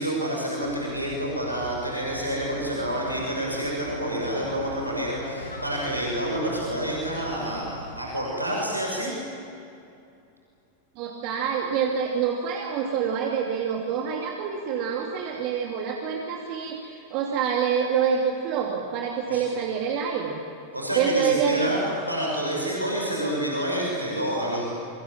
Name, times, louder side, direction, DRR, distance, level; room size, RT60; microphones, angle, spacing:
voice 1, 0.0-9.1 19.3-19.4 20.7-21.8 22.1-24.7, right 1 dB, 90° right, -3 dB, 6.5 m, -28 dB
sound 1, 0.6-8.0, left 1 dB, 80° left, 3.4 m, -40 dB
voice 2, 11.0-20.4 20.9-21.8, right 7 dB, 45° right, 0 dB, 2.7 m, -26 dB
28.5 x 25.0 x 7.4 m, 2.6 s
figure-of-eight pair, 90°, 0 cm